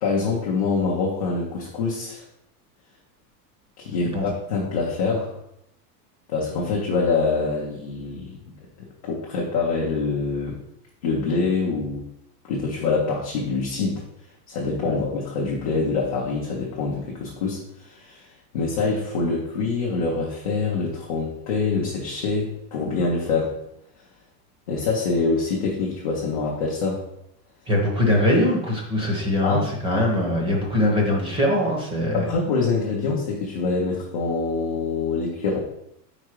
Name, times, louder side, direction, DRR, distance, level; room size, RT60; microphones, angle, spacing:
voice 1, 0.0-2.2 3.8-5.4 6.3-8.4 8.8-10.6 11.0-12.1 12.4-14.0 14.5-18.3 18.5-23.6 24.7-27.0 29.4-29.7 32.1-35.6, left 4 dB, 25° left, -4 dB, 0.3 m, -25 dB
voice 2, 27.7-32.3, left 1 dB, 10° right, -1 dB, 0.8 m, -22 dB
4.9 x 4.5 x 4.4 m, 0.79 s
supercardioid pair, 170°, 49 cm